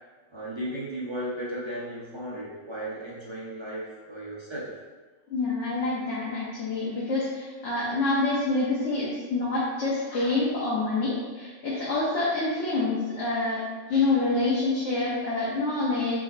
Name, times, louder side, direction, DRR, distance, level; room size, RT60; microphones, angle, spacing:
voice 1, 0.3-4.7, right 1 dB, 35° right, -7 dB, 0.5 m, -35 dB
voice 2, 5.3-13.6 13.9-16.2, left 3 dB, 80° left, -7 dB, 1.1 m, -27 dB
4.8 x 3.1 x 2.5 m, 1.3 s
omnidirectional pair, 1.2 m